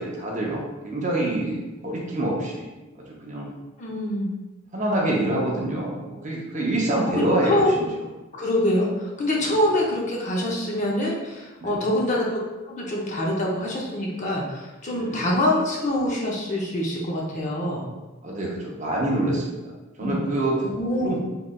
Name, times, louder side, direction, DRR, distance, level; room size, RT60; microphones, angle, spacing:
voice 1, 0.0-2.7 3.2-3.5 4.7-7.6 11.6-11.9 14.9-15.2 18.2-19.7 20.0-20.6 21.0-21.2, right 1 dB, 35° right, -2 dB, 0.6 m, -26 dB
voice 2, 3.8-4.3 7.1-7.8 8.3-12.3 12.6-17.8 20.0-20.2 20.6-21.1, left 1 dB, 35° left, -3 dB, 0.6 m, -25 dB
3.7 x 3.1 x 2.2 m, 1.1 s
head